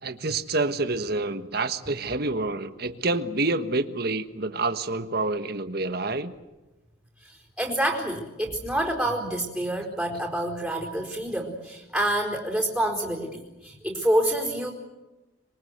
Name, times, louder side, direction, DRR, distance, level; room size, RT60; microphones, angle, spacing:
voice 1, 0.0-6.3, right 2 dB, 50° right, 9 dB, 1.4 m, -28 dB
voice 2, 7.2-14.7, right 1 dB, 5° right, 0 dB, 4.3 m, -27 dB
26.0 x 23.0 x 8.1 m, 1.1 s
head